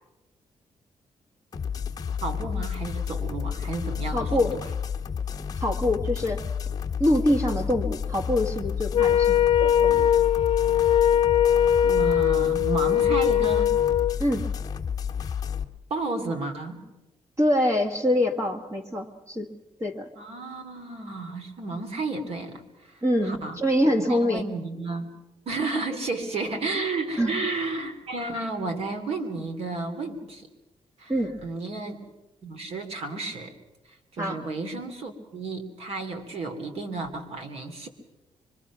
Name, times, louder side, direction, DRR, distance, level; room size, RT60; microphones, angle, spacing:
sound 1, 1.5-15.6, left 7 dB, 35° left, 1.2 m, -31 dB
voice 1, 2.2-4.5 11.8-13.8 15.9-16.9 20.1-23.6 24.0-25.1 25.4-30.5 31.0-31.1 31.4-32.1 32.4-33.5 33.9-37.9, right 3 dB, 65° right, 6 dB, 2.9 m, -32 dB
voice 2, 4.1-4.5 5.6-6.4 7.0-10.1 14.2-14.5 17.4-19.5 19.8-20.1 23.0-24.4 27.2-27.4 31.1-31.4 34.2-34.4, left 1 dB, 25° right, 3 dB, 1.8 m, -25 dB
Wind instrument woodwind instrument, 8.9-14.2, left 10 dB, 50° left, 0.7 m, -21 dB
24.5 x 23.5 x 6.1 m, 1.0 s
wide cardioid pair, 145°, 11 cm